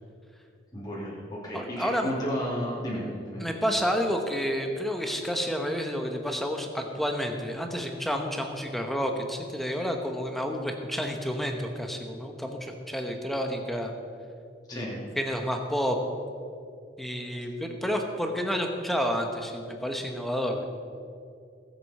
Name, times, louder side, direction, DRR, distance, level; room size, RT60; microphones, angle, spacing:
voice 1, 0.7-3.5 14.7-15.0, equal, 20° left, -6 dB, 2.8 m, -33 dB
voice 2, 1.5-2.1 3.4-13.9 14.7-16.0 17.0-20.6, equal, ahead, 3 dB, 1.1 m, -30 dB
19.5 x 8.1 x 4.3 m, 2.4 s
head